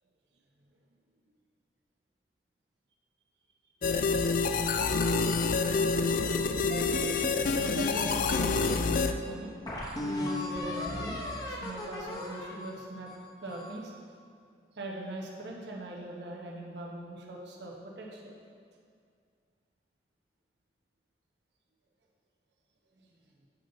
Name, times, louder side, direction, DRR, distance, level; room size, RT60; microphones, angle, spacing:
sound 1, 3.8-9.1, left 4 dB, 50° left, 0.3 m, -27 dB
voice 1, 4.3-5.2 7.6-9.5 10.0-13.1 13.4-13.9 14.7-18.3 23.0-23.1, right 1 dB, 75° right, -2 dB, 0.9 m, -41 dB
sound 2, 6.9-8.5 9.0-9.1 9.7-13.8, left 2 dB, 20° left, 0.8 m, -37 dB
8.3 x 5.3 x 3.9 m, 2.3 s
head